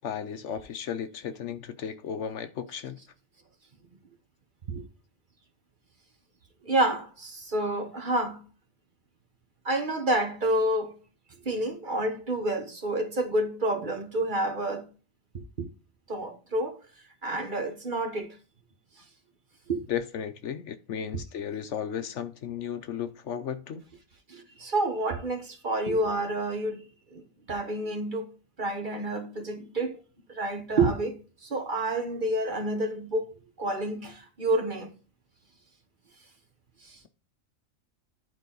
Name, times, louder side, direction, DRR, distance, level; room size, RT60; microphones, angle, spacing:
voice 1, 0.0-3.0 19.9-23.8, left 8 dB, 70° left, 1.0 m, -34 dB
voice 2, 6.6-8.4 9.6-11.0 11.4-14.8 15.3-15.7 16.1-16.8 17.2-18.3 19.7-19.8 24.3-28.3 28.6-30.0 30.3-33.3 33.6-34.9 36.8-37.0, right 1 dB, 40° right, 1.3 m, -29 dB
11.0 x 4.5 x 3.9 m
omnidirectional pair, 1.4 m